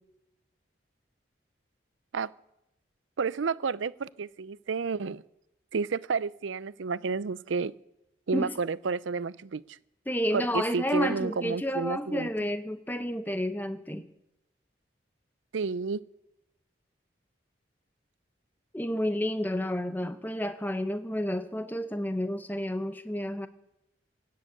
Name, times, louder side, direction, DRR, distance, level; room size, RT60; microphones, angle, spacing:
voice 1, 3.2-5.2 5.7-7.7 8.3-9.8 10.3-12.3 15.5-16.0, right 5 dB, 85° right, 0.5 m, -31 dB
voice 2, 10.1-14.1 18.7-23.5, equal, 10° left, 0.7 m, -30 dB
17.0 x 7.6 x 8.6 m
head